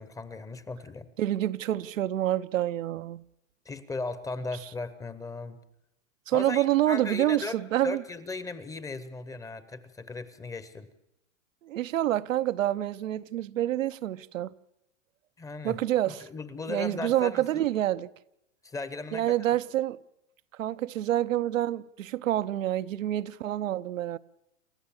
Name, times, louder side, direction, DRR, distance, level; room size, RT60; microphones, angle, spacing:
voice 1, 0.0-1.1 3.6-5.6 6.3-7.6 7.8-10.9 15.4-15.8 16.1-17.7 18.6-19.3, left 3 dB, 10° left, 0.8 m, -37 dB
voice 2, 1.2-3.2 6.3-8.0 11.6-14.5 15.6-16.3 16.7-18.1 19.1-20.0 20.6-24.2, right 13 dB, 80° right, 0.8 m, -27 dB
28.5 x 14.0 x 7.2 m
hypercardioid pair, 140°, 39 cm